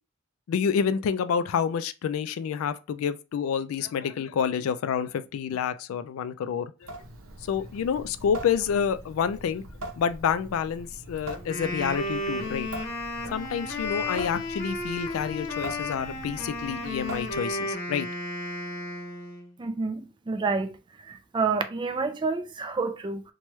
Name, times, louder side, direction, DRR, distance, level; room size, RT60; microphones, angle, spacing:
voice 1, 0.5-6.9 7.4-9.6 10.0-12.7 13.3-18.1, left 7 dB, 85° left, 0.3 m, -28 dB
Water tap faucet / Sink (filling or washing) / Drip, 6.8-17.7, right 1 dB, 80° right, 0.7 m, -42 dB
Wind instrument woodwind instrument, 11.3-19.5, left 1 dB, 50° left, 0.8 m, -33 dB
voice 2, 19.6-20.8 21.0-23.2, right 4 dB, 25° right, 0.3 m, -29 dB
3.0 x 2.2 x 3.0 m
head